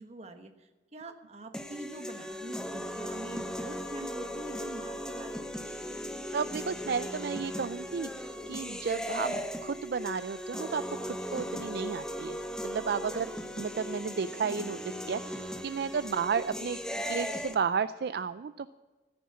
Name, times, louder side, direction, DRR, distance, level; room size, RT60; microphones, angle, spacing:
voice 1, 0.0-5.3 13.1-13.2 15.9-16.1, right 1 dB, 35° right, 7 dB, 1.2 m, -45 dB
sound 1, 1.5-17.5, equal, 5° left, 0.9 m, -37 dB
voice 2, 6.3-13.3 13.6-14.8 15.0-16.8 17.1-18.7, right 6 dB, 60° right, 14 dB, 0.3 m, -33 dB
14.5 x 9.5 x 7.3 m, 1.3 s
head